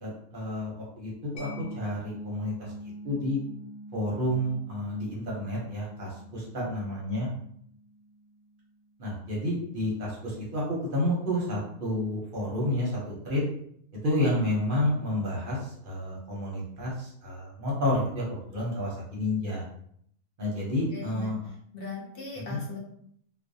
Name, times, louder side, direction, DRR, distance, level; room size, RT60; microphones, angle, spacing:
voice 1, 0.0-1.5 1.7-3.4 3.9-7.3 9.0-13.4 13.9-19.6 20.4-21.4 22.5-22.6, left 1 dB, 50° right, -4 dB, 0.7 m, -30 dB
Mallet percussion, 1.4-8.8, right 1 dB, 80° left, 1.0 m, -45 dB
voice 2, 20.9-21.3 21.7-22.8, left 4 dB, 60° left, -2 dB, 0.6 m, -39 dB
2.4 x 2.1 x 2.6 m, 0.67 s
omnidirectional pair, 1.5 m